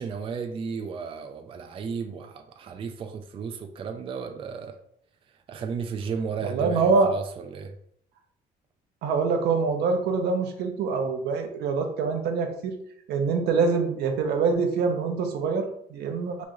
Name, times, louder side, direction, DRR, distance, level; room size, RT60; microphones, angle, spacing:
voice 1, 0.0-4.8 5.5-7.7, right 5 dB, 30° right, 6 dB, 0.4 m, -34 dB
voice 2, 6.4-7.2 9.0-12.7 13.1-16.4, right 4 dB, 75° right, 5 dB, 0.7 m, -25 dB
3.1 x 2.5 x 3.7 m, 0.67 s
cardioid pair, 110°, 17 cm